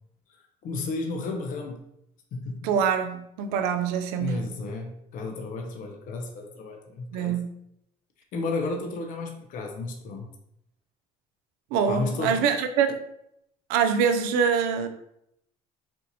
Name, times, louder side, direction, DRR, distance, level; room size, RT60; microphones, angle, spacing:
voice 1, 0.6-1.8 2.3-2.7 4.2-7.4 8.3-10.3 11.9-12.4, left 3 dB, 60° left, 3 dB, 0.6 m, -32 dB
voice 2, 2.6-4.4 7.1-7.5 11.7-13.0 13.7-14.9, right 7 dB, 80° right, 7 dB, 0.5 m, -24 dB
4.3 x 2.5 x 2.8 m, 0.76 s
supercardioid pair, 80°, 16 cm